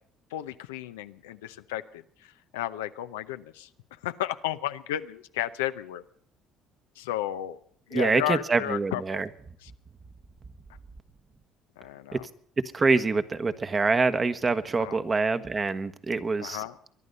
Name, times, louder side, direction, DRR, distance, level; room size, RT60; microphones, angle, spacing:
voice 1, 0.3-2.0 2.5-3.7 4.0-6.0 7.0-7.6 7.9-9.2 9.6-9.7 11.8-12.2 14.8-15.0 16.4-16.7, left 13 dB, 90° left, 10 dB, 0.7 m, -33 dB
voice 2, 7.9-9.3 12.1-12.2 12.7-16.6, right 4 dB, 30° right, 11 dB, 1.3 m, -25 dB
23.0 x 11.0 x 5.4 m, 0.64 s
hypercardioid pair, 70°, 0 cm